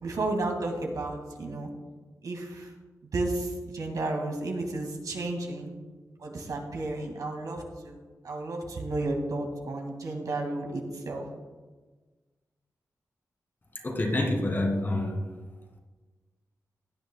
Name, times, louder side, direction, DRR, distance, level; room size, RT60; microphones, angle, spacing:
voice 1, 0.0-1.7 2.2-2.7 3.0-5.7 6.2-11.3, right 2 dB, 75° right, 2 dB, 1.9 m, -32 dB
voice 2, 13.8-15.2, left 1 dB, 35° left, 1 dB, 2.1 m, -27 dB
16.5 x 9.7 x 2.2 m, 1.3 s
wide cardioid pair, 145°, 6 cm